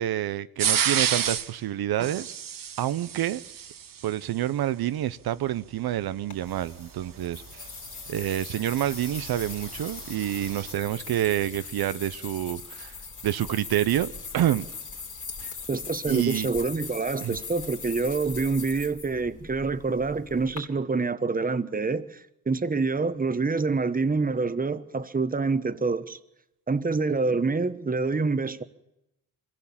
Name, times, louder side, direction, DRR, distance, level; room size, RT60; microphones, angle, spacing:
voice 1, 0.0-2.3 2.8-3.4 4.0-7.6 8.1-13.0 13.2-14.7 15.4-15.5 16.1-16.5 17.2-17.4, right 12 dB, 80° right, 0.7 m, -28 dB
sound 1, 0.6-1.5 2.0-4.1 6.7-10.7, right 8 dB, 60° right, 1.2 m, -31 dB
sound 2, 6.3-20.6, left 5 dB, 55° left, 3.7 m, -40 dB
voice 2, 15.7-26.2 26.7-28.6, right 4 dB, 25° right, 1.1 m, -27 dB
23.5 x 15.5 x 7.3 m
cardioid pair, 75°, 37 cm